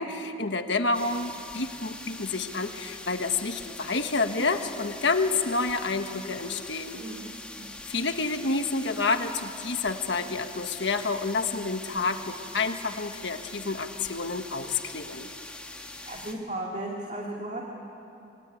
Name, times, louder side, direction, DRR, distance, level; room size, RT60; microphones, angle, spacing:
voice 1, 0.0-7.0 7.9-15.3, left 3 dB, 65° left, 6 dB, 1.6 m, -29 dB
sound 1, 0.9-16.3, left 2 dB, 5° left, 1.5 m, -43 dB
voice 2, 6.9-7.3 16.0-17.6, right 1 dB, 35° right, -1 dB, 2.5 m, -35 dB
26.0 x 24.5 x 9.3 m, 2.8 s
head